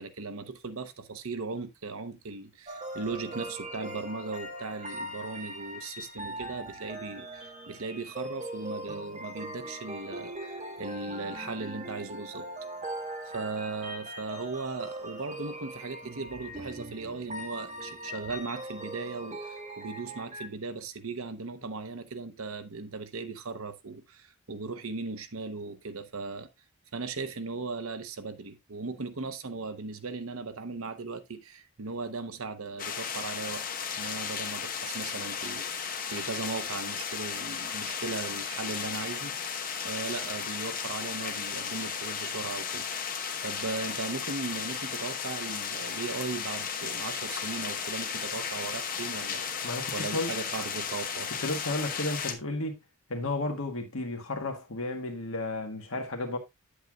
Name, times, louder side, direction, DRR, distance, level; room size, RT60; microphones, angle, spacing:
voice 1, 0.0-12.5 13.3-26.5 26.9-42.8 43.4-51.3, right 3 dB, 70° right, 0.9 m, -38 dB
sound 1, 2.7-20.5, right 1 dB, 30° right, 1.6 m, -40 dB
sound 2, 32.8-52.3, left 7 dB, 40° left, 1.0 m, -35 dB
voice 2, 49.6-50.3 51.4-52.8 53.1-56.4, left 2 dB, 70° left, 1.6 m, -33 dB
9.2 x 8.1 x 2.3 m
head